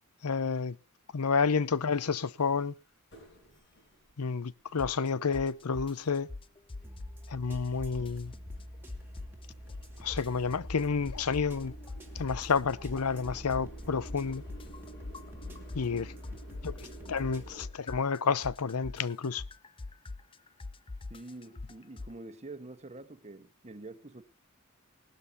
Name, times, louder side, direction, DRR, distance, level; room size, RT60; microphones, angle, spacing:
voice 1, 0.2-0.8 1.1-2.7 4.2-6.3 7.3-8.3 10.0-11.7 12.2-14.4 15.7-16.1 16.6-16.7 17.1-19.4, left 5 dB, 85° left, 0.7 m, -30 dB
sound 1, 1.9-4.2 4.7-4.8 5.3-17.7, right 1 dB, 55° left, 5.8 m, -53 dB
sound 2, 4.8-5.1 5.3-7.3 7.5-9.4 9.7-11.6 11.9-16.0 16.2-22.1, left 3 dB, 25° left, 0.6 m, -43 dB
sound 3, 6.8-17.5, equal, 10° right, 2.2 m, -47 dB
voice 2, 21.1-24.2, right 2 dB, 30° right, 1.3 m, -46 dB
19.5 x 12.5 x 2.8 m
head